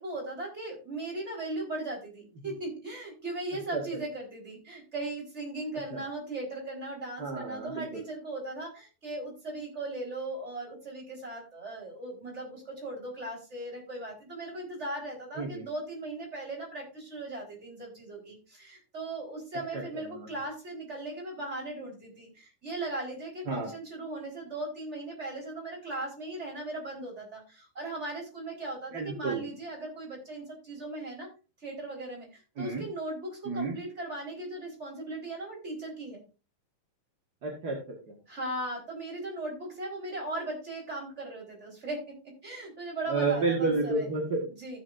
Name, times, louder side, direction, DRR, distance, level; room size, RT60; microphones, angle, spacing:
voice 1, 0.0-31.3 31.6-36.2 38.3-44.0 44.6-44.8, right 2 dB, 20° right, -2 dB, 4.5 m, -38 dB
voice 2, 7.2-8.0 15.4-15.7 19.7-19.8 20.1-20.3 23.5-23.7 28.9-29.4 32.6-32.8 33.4-33.8 37.4-38.2 43.1-44.5, right 3 dB, 40° right, 0 dB, 1.6 m, -31 dB
15.0 x 7.7 x 2.6 m, 0.30 s
omnidirectional pair, 3.8 m